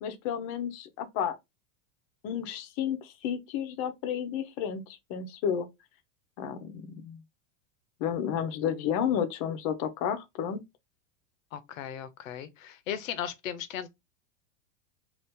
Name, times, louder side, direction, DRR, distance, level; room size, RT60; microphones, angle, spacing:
voice 1, 0.0-1.4 2.2-5.7 6.4-7.2 8.0-10.6, left 8 dB, 40° left, 0.6 m, -31 dB
voice 2, 11.5-13.9, left 9 dB, 90° left, 0.7 m, -37 dB
2.8 x 2.5 x 3.5 m
supercardioid pair, 140°, 39 cm